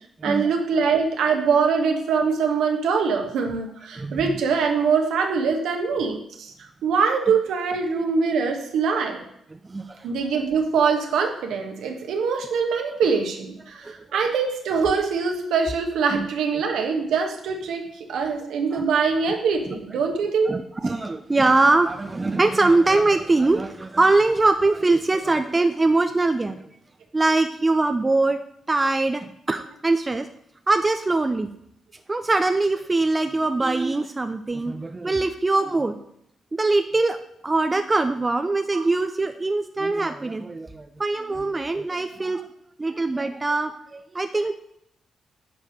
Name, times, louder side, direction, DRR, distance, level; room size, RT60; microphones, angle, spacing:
voice 1, 0.2-6.5 6.8-9.2 10.0-20.6 38.7-38.8, right 5 dB, 70° right, 3 dB, 1.5 m, -23 dB
voice 2, 4.0-4.4 8.9-9.0 9.7-10.1 13.8-13.9 16.1-16.3 18.7-18.8 20.5-26.7 27.1-28.4 28.7-30.3 30.7-31.5 32.1-36.0 36.5-42.5 42.8-44.5, right 2 dB, 30° right, 8 dB, 0.7 m, -22 dB
9.4 x 4.7 x 6.5 m, 0.72 s
hypercardioid pair, 40°, 0 cm